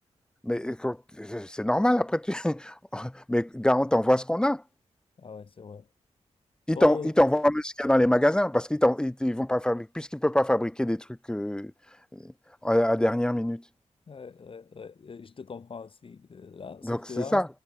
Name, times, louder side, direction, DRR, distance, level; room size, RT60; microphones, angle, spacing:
voice 1, 0.4-4.6 6.7-11.7 12.1-12.3 12.6-13.6 16.8-17.5, left 1 dB, 5° left, 0.7 m, -25 dB
voice 2, 5.2-5.9 6.7-7.1 14.1-17.4, left 5 dB, 45° left, 1.2 m, -40 dB
wide cardioid pair, 140°, 12 cm